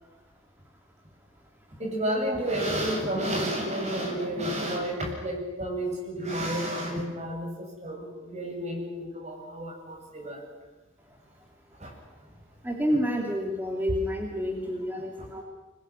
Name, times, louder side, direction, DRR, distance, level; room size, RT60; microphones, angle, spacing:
voice 1, 1.8-10.4 11.8-11.9 15.2-15.3, right 1 dB, 35° right, 0 dB, 8.0 m, -31 dB
voice 2, 12.6-15.4, equal, 10° right, 0 dB, 2.5 m, -29 dB
25.5 x 21.0 x 9.9 m, 1.2 s
head